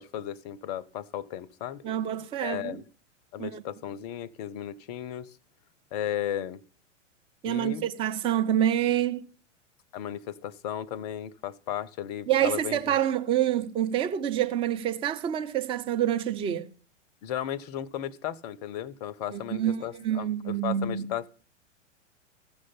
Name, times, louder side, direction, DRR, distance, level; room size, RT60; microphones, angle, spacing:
voice 1, 0.0-1.8 2.4-2.8 3.3-5.3 5.9-6.6 7.4-7.8 9.9-12.9 17.2-21.3, left 11 dB, 35° left, 0.6 m, -35 dB
voice 2, 1.8-2.8 3.4-3.6 7.4-9.3 12.3-16.7 19.3-21.1, right 11 dB, 15° right, 0.5 m, -27 dB
15.0 x 6.4 x 5.6 m
figure-of-eight pair, 100°, 37 cm